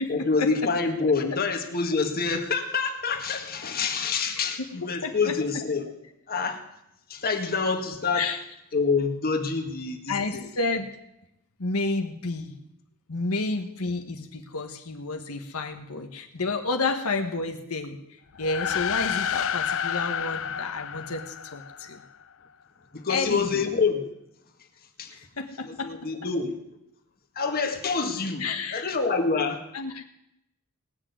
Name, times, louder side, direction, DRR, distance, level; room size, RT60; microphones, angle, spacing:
voice 1, 0.1-5.9 6.3-6.6 7.1-8.3 8.7-10.5 22.9-24.1 25.0-25.2 25.6-26.6 27.4-29.6, left 4 dB, 45° left, 4 dB, 1.8 m, -27 dB
voice 2, 5.0-5.3 8.1-8.4 10.1-11.0 11.6-12.5 13.1-18.0 18.4-22.0 23.1-23.6 25.1-25.9 28.4-28.8 29.7-30.0, left 3 dB, 90° left, 5 dB, 1.3 m, -30 dB
sound 1, 18.3-22.0, left 8 dB, 65° left, 0.6 m, -30 dB
18.5 x 6.3 x 9.4 m, 0.82 s
head